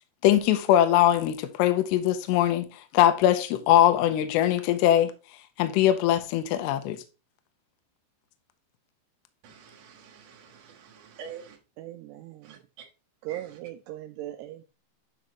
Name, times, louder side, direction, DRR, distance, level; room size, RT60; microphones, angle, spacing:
voice 1, 0.2-2.6 2.9-5.1 5.6-7.0, left 12 dB, 80° left, 2.8 m, -21 dB
voice 2, 9.4-11.6 12.4-12.6 13.3-13.4, right 7 dB, 60° right, 2.2 m, -46 dB
voice 3, 11.8-12.6 13.2-14.6, right 14 dB, 85° right, 2.5 m, -39 dB
10.0 x 5.5 x 3.0 m
omnidirectional pair, 5.4 m